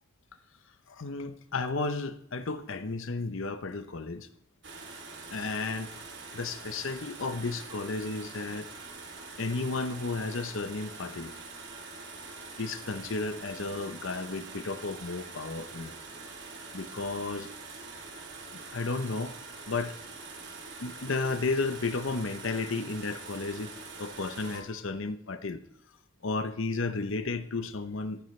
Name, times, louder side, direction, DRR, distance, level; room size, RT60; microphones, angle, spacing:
voice 1, 0.9-4.3 5.3-5.9 6.3-8.7 9.4-11.3 12.6-15.9 16.7-17.5 18.5-19.3 19.7-20.0 20.8-23.7 24.0-25.6 26.2-28.2, left 3 dB, 65° left, 0.8 m, -33 dB
sound 1, 4.6-24.6, right 3 dB, 55° right, 2.9 m, -44 dB
25.0 x 11.0 x 3.2 m
head